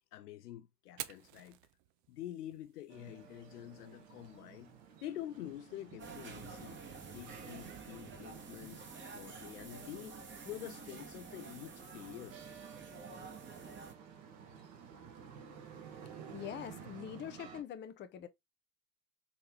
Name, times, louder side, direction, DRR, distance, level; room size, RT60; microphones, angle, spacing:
voice 1, 0.1-1.6 2.1-4.7 5.0-6.8 7.1-8.8 9.1-10.2 10.4-12.4, left 12 dB, 75° left, 0.7 m, -47 dB
Fire, 0.8-8.8, right 14 dB, 40° right, 0.5 m, -54 dB
sound 1, 2.9-17.6, right 7 dB, 55° right, 1.4 m, -54 dB
sound 2, 6.0-13.9, right 4 dB, 25° right, 1.2 m, -50 dB
voice 2, 16.3-18.3, left 9 dB, 25° left, 0.6 m, -44 dB
4.0 x 3.2 x 2.9 m
hypercardioid pair, 80°, 47 cm